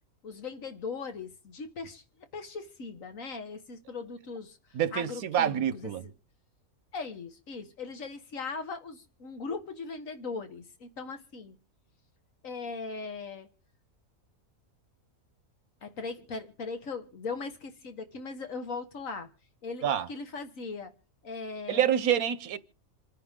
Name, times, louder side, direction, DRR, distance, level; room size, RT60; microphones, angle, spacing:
voice 1, 0.2-2.0 2.3-4.6 4.9-5.9 6.9-11.6 12.4-13.5 15.8-19.3 19.6-19.8 20.1-20.9 21.2-21.8, left 4 dB, 70° left, 1.8 m, -39 dB
voice 2, 4.7-6.0 19.8-20.1 21.7-22.6, right 9 dB, 85° right, 1.3 m, -27 dB
27.0 x 10.0 x 3.7 m
omnidirectional pair, 1.5 m